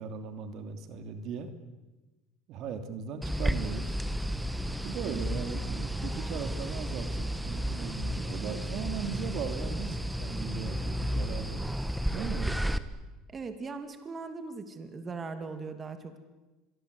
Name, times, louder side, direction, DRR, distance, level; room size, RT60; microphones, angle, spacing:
voice 1, 0.0-1.5 2.5-4.0 4.8-11.6 12.1-12.6, right 6 dB, 55° right, 8 dB, 2.8 m, -38 dB
sound 1, 3.2-12.8, equal, 5° right, 1.3 m, -32 dB
voice 2, 13.3-16.2, right 4 dB, 25° right, 8 dB, 2.6 m, -39 dB
26.0 x 22.0 x 8.4 m, 1.1 s
supercardioid pair, 115°, 0 cm